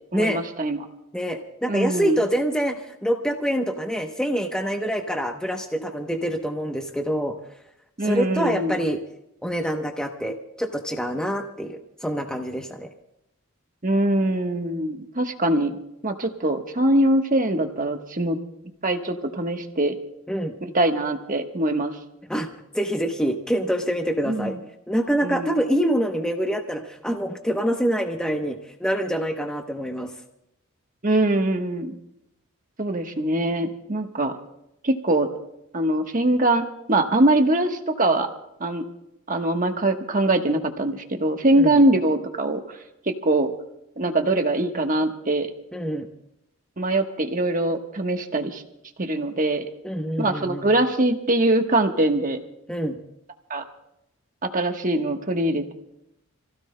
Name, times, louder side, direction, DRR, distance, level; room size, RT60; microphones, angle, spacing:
voice 1, 0.1-0.8 1.7-2.2 8.0-8.8 13.8-15.7 16.0-18.4 18.8-19.9 20.6-22.0 24.2-24.5 25.2-25.5 31.0-31.9 32.8-34.3 34.8-35.3 35.7-36.6 36.9-38.3 38.6-38.8 39.3-42.6 43.0-43.5 44.0-45.5 46.8-48.6 49.0-49.7 50.2-52.4 53.5-53.6 54.4-55.7, right 1 dB, 40° right, 5 dB, 1.2 m, -22 dB
voice 2, 1.1-7.3 8.0-9.0 9.4-12.9 20.3-20.5 22.3-22.5 22.7-24.5 24.9-30.1 41.6-41.8 45.7-46.1 49.8-50.7 52.7-53.0, equal, 5° left, 3 dB, 0.8 m, -26 dB
30.0 x 16.0 x 2.2 m, 0.83 s
head